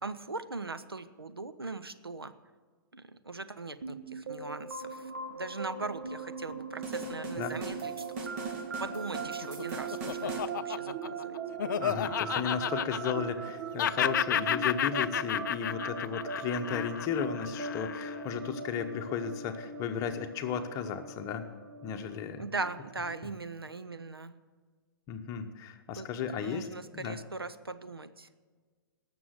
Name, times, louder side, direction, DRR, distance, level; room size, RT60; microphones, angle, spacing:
voice 1, 0.0-2.3 2.9-8.0 8.8-11.4 22.4-24.4 26.0-26.1 26.3-28.3, right 3 dB, 85° right, 11 dB, 0.7 m, -40 dB
sound 1, 3.8-23.3, right 4 dB, 60° right, 1.2 m, -40 dB
sound 2, 6.8-10.5, right 3 dB, 40° right, 2.1 m, -41 dB
Laughter, 9.3-13.5 13.8-18.2, left 10 dB, 55° left, 0.4 m, -32 dB
voice 2, 11.8-21.5 21.8-22.4 25.1-26.7 26.9-27.2, left 7 dB, 25° left, 7 dB, 1.0 m, -34 dB
18.5 x 7.0 x 6.5 m, 1.5 s
figure-of-eight pair, 115°, 12 cm